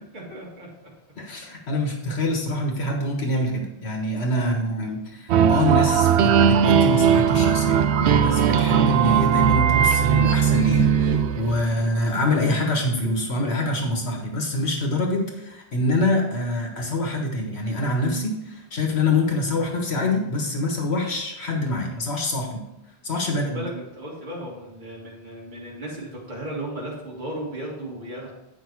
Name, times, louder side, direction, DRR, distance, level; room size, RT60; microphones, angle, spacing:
voice 1, 0.1-0.7 4.4-4.7 11.5-11.9 23.2-28.3, right 1 dB, 45° right, -5 dB, 2.2 m, -36 dB
voice 2, 1.2-22.6 23.0-23.6, left 1 dB, 75° left, 1 dB, 1.7 m, -25 dB
sound 1, 5.3-11.9, right 8 dB, 85° right, 0.8 m, -19 dB
9.2 x 5.5 x 4.6 m, 0.90 s
omnidirectional pair, 1.1 m